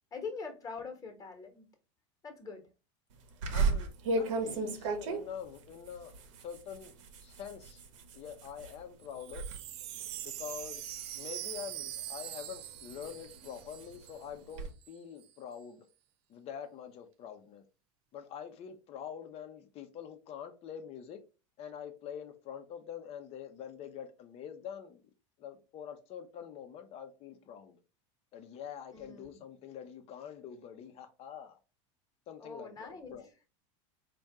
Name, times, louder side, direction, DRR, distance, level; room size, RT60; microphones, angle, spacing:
voice 1, 0.1-1.7 2.2-2.7 4.4-4.8 28.9-29.4 32.4-33.5, left 4 dB, 20° left, 1.3 m, -44 dB
sound 1, 3.4-8.8 9.2-9.6 9.9-12.0 12.5-14.7, right 3 dB, 80° right, 0.9 m, -35 dB
voice 2, 3.5-6.1 6.4-7.8 8.1-9.5 10.2-15.8 16.3-17.6 18.1-21.2 21.6-25.0 25.4-27.8 28.3-31.6 32.3-33.2, left 8 dB, 40° left, 0.8 m, -45 dB
Wind chime, 9.0-14.3 14.5-14.6 14.8-15.3, right 13 dB, 40° right, 0.4 m, -43 dB
4.2 x 2.5 x 3.6 m
supercardioid pair, 125°, 16 cm